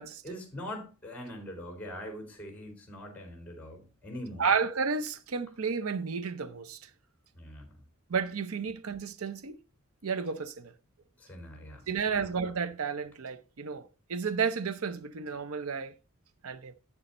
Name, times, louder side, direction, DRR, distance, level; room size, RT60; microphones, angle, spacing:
voice 1, 0.2-4.5 7.3-7.8 11.2-12.3, equal, 5° left, 3.9 m, -43 dB
voice 2, 4.4-6.9 8.1-9.6 10.0-10.7 11.9-15.9 16.4-16.7, right 5 dB, 85° right, 0.7 m, -32 dB
9.8 x 6.7 x 4.2 m
head